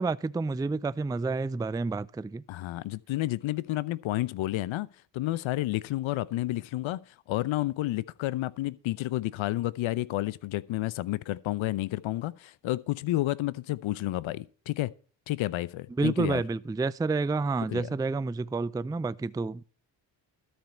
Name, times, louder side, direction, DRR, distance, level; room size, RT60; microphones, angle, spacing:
voice 1, 0.0-2.4 16.0-19.7, right 3 dB, 10° right, 0.4 m, -29 dB
voice 2, 2.5-4.9 5.1-7.0 7.3-14.9 15.3-16.4 17.7-17.9, left 16 dB, 80° left, 0.7 m, -30 dB
13.0 x 4.5 x 8.3 m
supercardioid pair, 55°, 47 cm